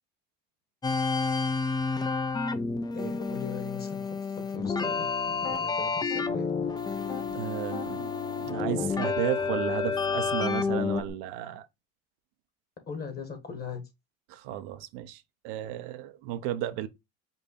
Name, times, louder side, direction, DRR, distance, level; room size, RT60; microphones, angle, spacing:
sound 1, 0.8-11.0, left 5 dB, 15° left, 0.4 m, -30 dB
voice 1, 2.9-6.5 12.9-13.8, left 5 dB, 30° left, 1.6 m, -40 dB
Piano, 4.6-5.6 6.1-7.3 7.7-11.1, left 5 dB, 60° left, 2.1 m, -42 dB
voice 2, 7.3-11.7 14.3-16.9, right 12 dB, 75° right, 0.7 m, -34 dB
5.4 x 2.2 x 4.1 m
supercardioid pair, 90°, 33 cm